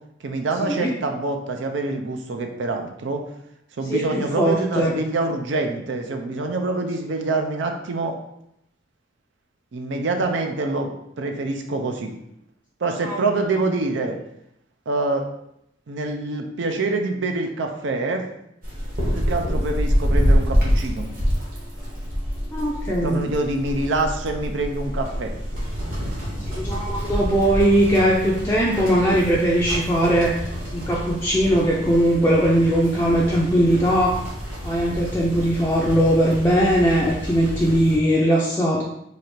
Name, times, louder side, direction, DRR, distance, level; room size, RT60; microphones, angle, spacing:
voice 1, 0.2-3.2 3.8-8.2 9.7-12.1 12.8-14.2 14.9-15.3 15.9-18.2 19.2-21.1 22.9-25.3, right 3 dB, 80° right, 4 dB, 0.5 m, -25 dB
voice 2, 3.9-4.9 13.0-13.2 22.5-23.2 26.6-34.2 34.6-38.8, equal, 10° left, -5 dB, 0.4 m, -20 dB
sound 1, 18.6-38.0, equal, 50° right, 1.2 m, -27 dB
3.3 x 2.4 x 4.3 m, 0.78 s
head